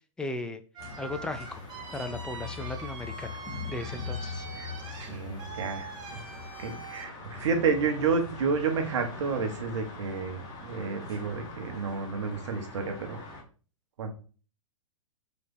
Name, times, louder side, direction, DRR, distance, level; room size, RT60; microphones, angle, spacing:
voice 1, 0.2-0.6 1.0-1.6 1.9-3.4 3.7-4.5, left 2 dB, 5° left, 8 dB, 0.3 m, -36 dB
sound 1, 0.7-7.1, right 4 dB, 25° right, 1.1 m, -43 dB
sound 2, 0.8-13.4, left 4 dB, 20° left, 1.2 m, -42 dB
voice 2, 4.5-6.2 6.6-13.2 14.0-14.1, right 5 dB, 60° right, 5 dB, 1.1 m, -30 dB
4.0 x 3.4 x 3.6 m, 0.38 s
figure-of-eight pair, 115°, 17 cm